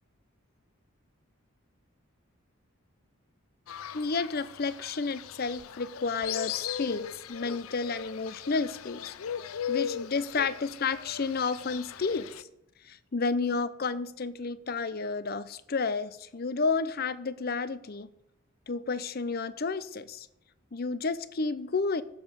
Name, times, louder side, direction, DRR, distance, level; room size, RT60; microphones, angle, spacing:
Fowl, 3.7-12.4, left 9 dB, 90° left, 0.5 m, -38 dB
voice 1, 3.9-9.1 9.4-12.3 12.8-18.1 18.7-20.3 20.7-22.0, left 4 dB, 45° left, 16 dB, 0.6 m, -31 dB
11.0 x 7.2 x 6.9 m, 0.82 s
head